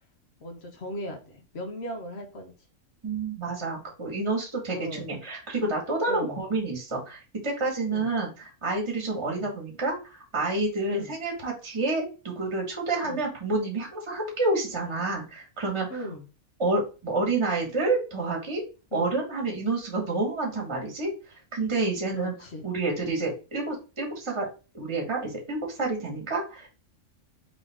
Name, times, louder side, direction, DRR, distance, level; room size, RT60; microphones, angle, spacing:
voice 1, 0.4-2.5 4.7-5.1 6.1-6.4 7.9-8.1 9.3-9.5 10.9-11.1 13.0-13.2 15.9-16.2 18.9-19.2 22.1-22.7, equal, 50° left, 5 dB, 1.0 m, -38 dB
voice 2, 3.0-16.0 16.6-18.6 18.9-22.3 22.6-24.5 24.7-26.7, right 3 dB, 20° right, -1 dB, 1.4 m, -29 dB
4.1 x 3.4 x 3.4 m, 0.32 s
omnidirectional pair, 1.5 m